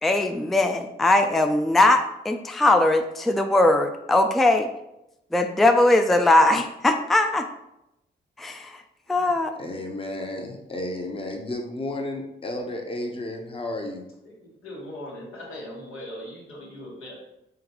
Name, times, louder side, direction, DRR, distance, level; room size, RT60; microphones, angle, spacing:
voice 1, 0.0-4.7 5.3-7.5 8.4-8.7 9.1-9.5, left 2 dB, ahead, 5 dB, 0.3 m, -20 dB
voice 2, 9.1-14.0, left 1 dB, 25° left, 3 dB, 0.7 m, -33 dB
voice 3, 14.6-17.2, left 1 dB, 90° left, -4 dB, 1.3 m, -39 dB
3.8 x 3.4 x 2.9 m, 0.86 s
cardioid pair, 55°, 21 cm